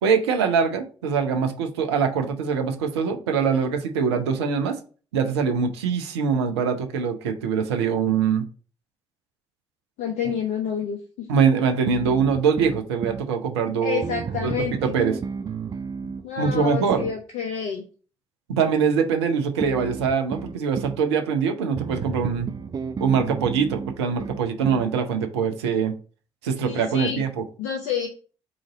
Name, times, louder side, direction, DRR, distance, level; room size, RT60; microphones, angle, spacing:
voice 1, 0.0-4.8 5.1-8.5 11.3-14.5 14.8-15.2 16.4-17.0 18.5-22.5 23.0-25.9 26.4-27.4, right 6 dB, 80° right, 5 dB, 0.5 m, -23 dB
voice 2, 10.0-11.3 13.8-14.9 16.2-17.9 26.6-27.2 27.6-28.1, left 8 dB, 60° left, 4 dB, 0.6 m, -28 dB
sound 1, 11.9-13.3 14.0-17.2 19.6-21.0 21.8-24.9, right 6 dB, 30° right, 0.4 m, -33 dB
4.9 x 2.5 x 3.9 m, 0.39 s
figure-of-eight pair, 45°, 14 cm